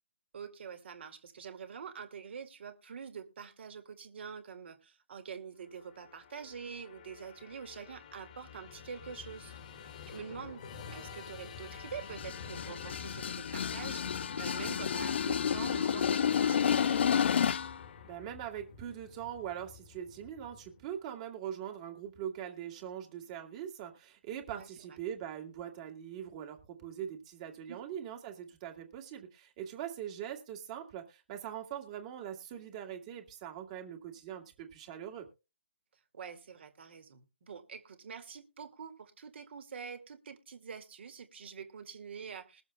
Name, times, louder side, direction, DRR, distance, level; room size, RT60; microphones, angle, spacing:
voice 1, 0.3-17.3 24.5-25.0 27.7-27.9 36.1-42.6, right 6 dB, 55° right, 2.1 m, -46 dB
Musical instrument, 5.7-21.0, left 7 dB, 35° left, 1.3 m, -49 dB
sound 1, 12.0-17.8, left 8 dB, 55° left, 0.4 m, -30 dB
voice 2, 18.0-35.3, right 9 dB, 30° right, 2.1 m, -42 dB
21.5 x 7.2 x 2.2 m
figure-of-eight pair, 150°, 7 cm